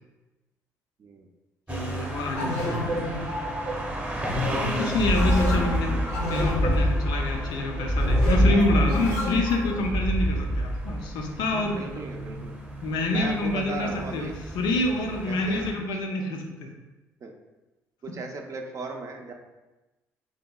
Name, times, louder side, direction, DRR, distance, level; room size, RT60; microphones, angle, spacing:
voice 1, 1.7-3.2 4.6-11.8 12.8-14.3 14.5-16.7, left 2 dB, 65° left, 2 dB, 0.4 m, -27 dB
sound 1, 1.7-15.7, right 2 dB, 15° right, 0.8 m, -36 dB
sound 2, 2.3-9.9, left 1 dB, 85° left, 1.1 m, -31 dB
sound 3, 4.9-11.0, equal, 20° left, 0.6 m, -25 dB
voice 2, 11.5-12.6 13.1-14.3 15.3-15.9 17.2-17.3 18.0-19.3, right 3 dB, 40° right, 3 dB, 0.4 m, -37 dB
2.8 x 2.7 x 2.2 m, 1.1 s
hypercardioid pair, 50°, 8 cm